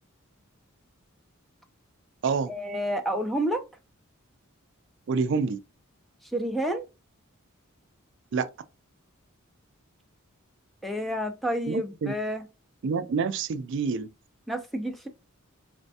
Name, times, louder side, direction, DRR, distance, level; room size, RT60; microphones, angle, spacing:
voice 1, 2.5-3.6 6.3-6.8 10.8-12.4 14.5-15.1, equal, ahead, 0.5 m, -29 dB
voice 2, 5.1-5.6 8.3-8.5 11.7-12.1 12.8-14.1, right 5 dB, 60° right, 0.4 m, -27 dB
4.3 x 3.2 x 2.7 m
head